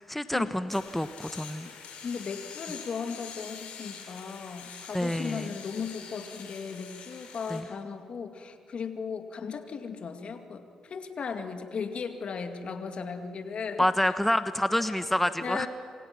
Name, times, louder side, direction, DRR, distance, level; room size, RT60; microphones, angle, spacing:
voice 1, 0.0-1.7 4.9-5.5 7.5-7.7 13.8-15.7, left 1 dB, 5° left, 11 dB, 1.2 m, -28 dB
sound 1, 0.7-7.6, left 7 dB, 75° left, 4.2 m, -45 dB
voice 2, 2.0-13.9 15.4-15.7, left 5 dB, 55° left, 7 dB, 2.3 m, -36 dB
27.5 x 27.0 x 6.1 m, 2.5 s
hypercardioid pair, 50°, 2 cm